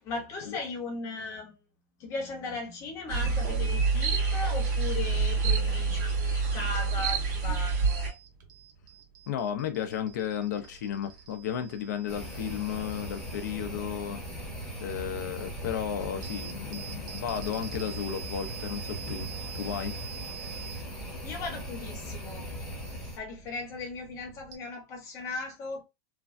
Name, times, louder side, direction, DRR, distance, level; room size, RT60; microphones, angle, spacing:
voice 1, 0.0-1.5 2.0-8.1 21.2-22.5 23.1-25.8, left 3 dB, 30° left, 0.9 m, -37 dB
sound 1, 3.1-8.1, right 4 dB, 40° right, 1.5 m, -27 dB
sound 2, 7.3-24.6, right 10 dB, 80° right, 0.7 m, -48 dB
voice 2, 9.3-14.2 14.8-20.0, left 9 dB, 75° left, 0.6 m, -34 dB
sound 3, 12.1-23.2, equal, 5° left, 1.1 m, -39 dB
3.2 x 2.2 x 2.6 m
supercardioid pair, 160°, 10 cm